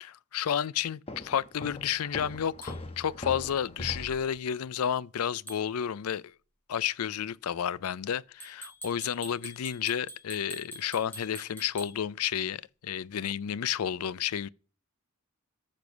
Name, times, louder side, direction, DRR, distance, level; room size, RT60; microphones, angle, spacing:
voice 1, 0.0-6.3 6.7-14.5, left 9 dB, 85° left, 0.4 m, -31 dB
Walk footsteps, 1.1-4.4, left 1 dB, 25° left, 1.2 m, -41 dB
sound 1, 2.6-2.8 5.5-5.7 8.4-12.0, right 1 dB, 10° left, 3.5 m, -45 dB
13.0 x 6.8 x 6.1 m
head